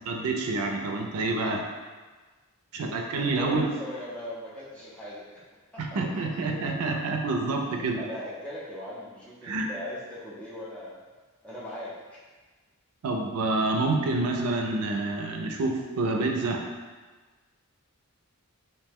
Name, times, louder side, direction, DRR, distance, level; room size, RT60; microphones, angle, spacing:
voice 1, 0.1-1.6 2.7-3.7 5.8-8.0 9.4-9.7 13.0-16.7, right 2 dB, 85° right, 2 dB, 0.4 m, -28 dB
voice 2, 3.2-5.4 7.8-11.0 11.4-12.2, left 1 dB, 5° left, -9 dB, 0.6 m, -39 dB
2.7 x 2.1 x 3.4 m, 1.3 s
head